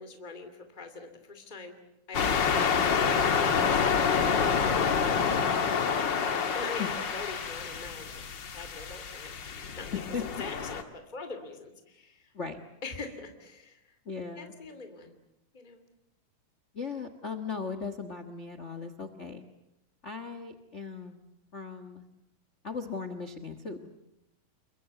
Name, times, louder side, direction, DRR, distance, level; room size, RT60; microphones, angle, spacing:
voice 1, 0.0-1.8 2.1-4.1 4.6-5.3 6.5-8.2 8.5-9.9 10.2-12.3 12.8-14.0 14.3-15.2 15.5-15.8, left 4 dB, 15° left, 7 dB, 2.4 m, -43 dB
sound 1, 2.1-10.8, left 6 dB, 45° left, 1.5 m, -28 dB
voice 2, 14.0-14.5 16.7-19.4 20.0-21.2 21.5-22.0 22.6-23.9, left 5 dB, 75° left, 10 dB, 0.6 m, -37 dB
29.0 x 22.0 x 8.2 m, 0.85 s
omnidirectional pair, 3.9 m